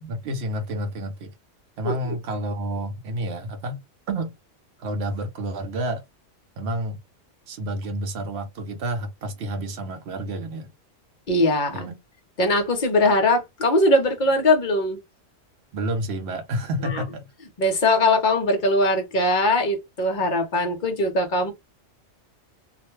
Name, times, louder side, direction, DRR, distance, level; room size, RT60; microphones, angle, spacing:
voice 1, 0.1-1.3 1.8-3.8 4.1-4.3 4.8-6.0 6.6-7.0 7.5-10.7 11.7-12.0 15.7-17.3, right 1 dB, 60° right, 0.9 m, -29 dB
voice 2, 1.8-2.2 11.3-11.9 12.4-15.0 16.9-17.0 17.6-21.5, left 1 dB, 45° left, 0.7 m, -21 dB
2.4 x 2.1 x 3.1 m
omnidirectional pair, 1.4 m